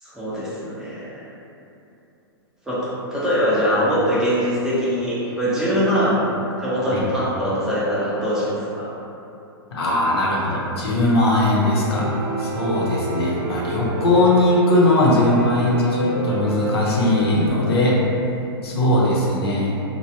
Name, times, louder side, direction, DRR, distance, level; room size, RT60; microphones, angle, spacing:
voice 1, 0.0-1.3 2.7-6.2 6.6-8.9, equal, 5° right, -10 dB, 0.6 m, -22 dB
voice 2, 9.7-12.1 12.4-18.0 18.6-19.7, left 1 dB, 75° left, -5 dB, 0.8 m, -19 dB
Piano, 11.9-17.5, right 2 dB, 55° right, 0.7 m, -28 dB
3.1 x 2.2 x 2.7 m, 2.8 s
hypercardioid pair, 125°, 13 cm